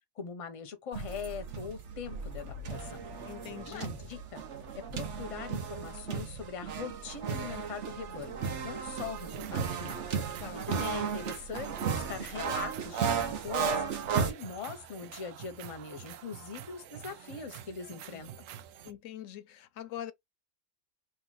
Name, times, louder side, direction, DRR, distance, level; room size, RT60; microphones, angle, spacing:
voice 1, 0.2-3.0 3.6-4.4 4.7-8.4 8.6-10.0 10.7-13.8 14.2-18.3, left 6 dB, 35° left, 0.7 m, -41 dB
sound 1, 0.9-14.3, right 6 dB, 70° right, 1.1 m, -35 dB
voice 2, 3.3-3.9 10.4-10.7 18.1-18.2 18.8-20.1, left 11 dB, 80° left, 0.9 m, -43 dB
sound 2, 9.0-18.9, right 10 dB, 90° right, 1.0 m, -48 dB
3.0 x 2.5 x 3.8 m
omnidirectional pair, 1.3 m